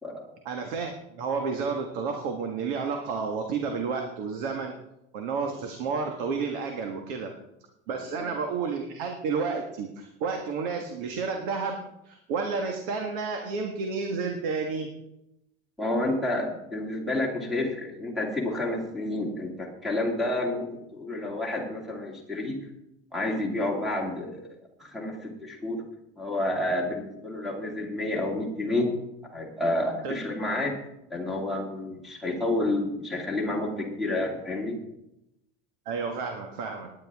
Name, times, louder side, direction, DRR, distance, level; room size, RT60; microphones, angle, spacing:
voice 1, 0.4-4.7 5.1-7.3 7.9-11.8 12.0-14.9 30.0-30.2 35.8-36.9, right 5 dB, 65° right, 3 dB, 1.7 m, -31 dB
voice 2, 15.8-22.6 23.1-24.5 24.8-25.8 26.2-28.9 29.3-30.7 31.1-34.8, left 1 dB, ahead, -1 dB, 2.4 m, -29 dB
17.5 x 10.5 x 3.6 m, 0.86 s
cardioid pair, 170°, 29 cm